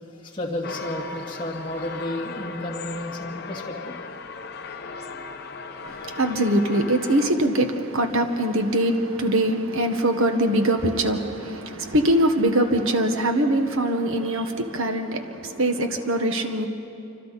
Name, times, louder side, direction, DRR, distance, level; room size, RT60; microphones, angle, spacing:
voice 1, 0.2-3.9, left 1 dB, 25° left, 2.3 m, -32 dB
sound 1, 0.6-7.3, left 4 dB, 50° left, 0.9 m, -37 dB
voice 2, 5.9-16.7, right 1 dB, 80° right, 1.4 m, -23 dB
28.0 x 25.5 x 4.2 m
head